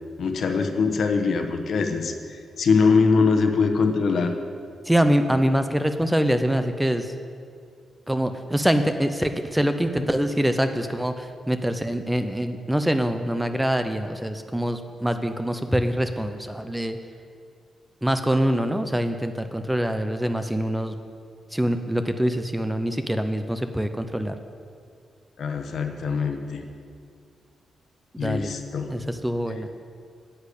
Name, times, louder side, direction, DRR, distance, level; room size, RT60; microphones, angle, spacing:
voice 1, 0.2-4.3 10.0-10.1 25.4-26.6 28.2-28.9, left 4 dB, 55° left, 6 dB, 1.1 m, -23 dB
voice 2, 4.8-7.1 8.1-17.0 18.0-21.0 21.5-24.4 28.1-28.5 28.9-29.7, equal, 5° right, 8 dB, 0.5 m, -24 dB
10.0 x 8.4 x 8.3 m, 2.2 s
wide cardioid pair, 155°, 0 cm